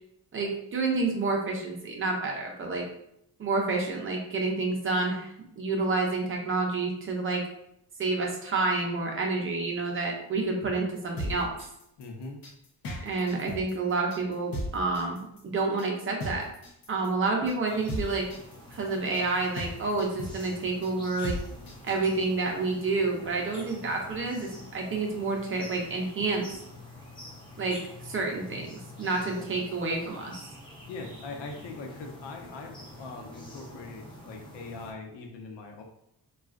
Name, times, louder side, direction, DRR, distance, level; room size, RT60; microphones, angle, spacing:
voice 1, 0.3-2.8 3.4-7.4 8.0-11.5 13.0-16.4 16.9-18.3 18.7-21.4 21.8-26.5 27.6-30.3, right 3 dB, 30° right, 0 dB, 0.5 m, -29 dB
sound 1, 11.0-22.0, equal, 55° left, 0.8 m, -37 dB
voice 2, 12.0-12.4 29.3-29.5 30.9-35.8, left 3 dB, 85° left, 2 dB, 0.8 m, -41 dB
sound 2, 17.6-34.9, left 1 dB, 10° left, 0.6 m, -47 dB
4.1 x 2.4 x 2.4 m, 0.78 s
cardioid pair, 165°, 41 cm